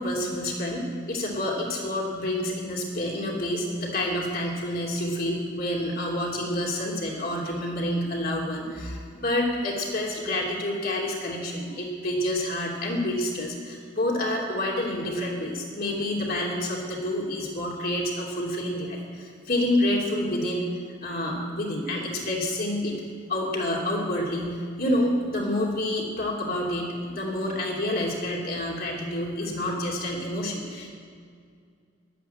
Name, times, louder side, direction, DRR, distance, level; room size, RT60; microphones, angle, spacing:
voice 1, 0.0-20.7 21.0-23.0 23.3-30.9, left 1 dB, 50° left, -2 dB, 2.9 m, -28 dB
11.5 x 11.0 x 7.9 m, 2.2 s
head